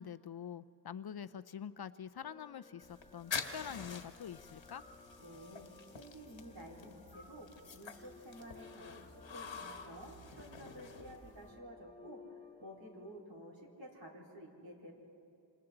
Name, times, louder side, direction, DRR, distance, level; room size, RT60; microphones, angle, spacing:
voice 1, 0.0-4.8, left 8 dB, 55° left, 14 dB, 0.5 m, -46 dB
sound 1, 2.2-13.2, left 4 dB, 15° left, 0.6 m, -59 dB
sound 2, 2.8-11.5, left 5 dB, 75° left, 1.3 m, -47 dB
sound 3, 4.2-11.6, right 1 dB, 50° right, 2.3 m, -61 dB
voice 2, 5.2-5.7 5.9-9.0 9.3-12.2 12.6-14.9, equal, 70° right, -4 dB, 4.4 m, -52 dB
27.0 x 27.0 x 3.9 m, 2.7 s
wide cardioid pair, 70°, 46 cm